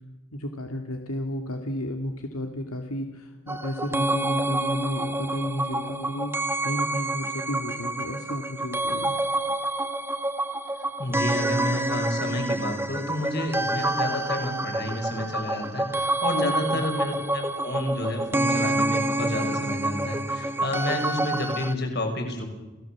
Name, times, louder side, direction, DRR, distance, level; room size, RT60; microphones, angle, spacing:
voice 1, 0.3-9.2 16.3-16.8, left 1 dB, 80° left, 4 dB, 2.4 m, -33 dB
sound 1, 3.5-21.7, right 2 dB, 10° right, 1.1 m, -28 dB
voice 2, 11.0-22.5, left 1 dB, 50° left, 3 dB, 6.3 m, -30 dB
29.5 x 18.0 x 7.5 m, 1.1 s
head